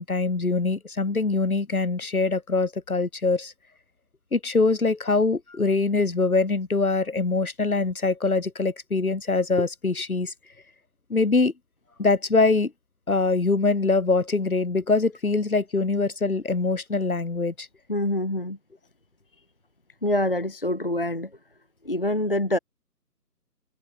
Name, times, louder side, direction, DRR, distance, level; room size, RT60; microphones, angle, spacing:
voice 1, 0.0-3.5 4.3-10.3 11.1-11.5 12.0-12.7 13.1-17.7, left 3 dB, 60° left, 2.0 m, -23 dB
voice 2, 17.9-18.6 20.0-21.3 21.8-22.6, left 1 dB, 35° left, 0.9 m, -25 dB
figure-of-eight pair, 160°, 49 cm